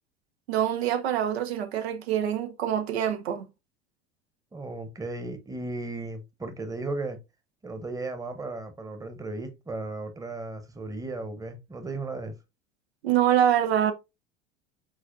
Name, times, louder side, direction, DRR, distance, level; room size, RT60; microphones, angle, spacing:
voice 1, 0.5-3.5 13.0-13.9, right 10 dB, 75° right, 0.6 m, -25 dB
voice 2, 4.5-7.2 7.6-12.3, right 2 dB, 10° right, 0.9 m, -35 dB
4.8 x 4.0 x 2.5 m
figure-of-eight pair, 75°, 32 cm